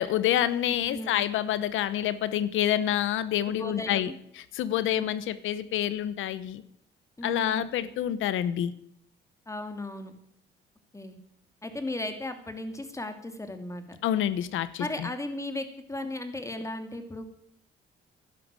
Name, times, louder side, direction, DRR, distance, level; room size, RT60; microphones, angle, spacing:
voice 1, 0.0-4.1 4.5-6.6 7.2-8.7 14.0-15.1, left 11 dB, 85° left, 15 dB, 1.0 m, -27 dB
voice 2, 0.9-1.2 3.5-4.1 4.8-5.0 7.2-7.6 9.5-10.1 10.9-11.2 11.6-14.0 14.8-17.3, left 2 dB, 15° left, 7 dB, 2.7 m, -36 dB
12.0 x 11.5 x 8.9 m, 0.70 s
cardioid pair, 90°, 20 cm